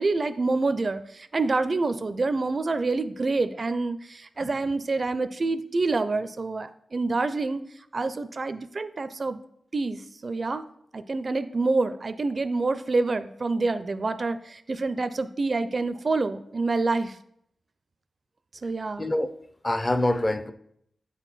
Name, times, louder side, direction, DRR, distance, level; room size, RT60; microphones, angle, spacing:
voice 1, 0.0-7.6 7.9-9.4 9.7-10.6 10.9-17.1 18.6-19.1, right 3 dB, 45° right, 12 dB, 0.4 m, -27 dB
voice 2, 19.0-19.3 19.6-20.5, left 1 dB, 25° left, 11 dB, 0.5 m, -25 dB
8.3 x 4.5 x 4.1 m, 0.72 s
wide cardioid pair, 85°, 0 cm